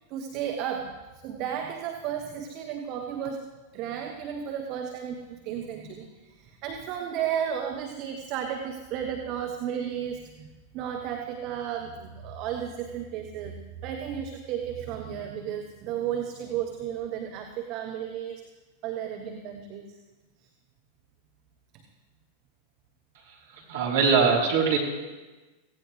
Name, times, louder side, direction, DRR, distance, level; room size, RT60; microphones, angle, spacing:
voice 1, 0.0-3.5 3.7-13.6 13.8-18.4 18.8-20.0 21.7-21.8, right 9 dB, 40° right, 4 dB, 1.1 m, -33 dB
voice 2, 23.3-24.8, right 5 dB, 55° right, -2 dB, 3.7 m, -23 dB
17.0 x 16.5 x 3.3 m, 1.2 s
figure-of-eight pair, 90°, 0 cm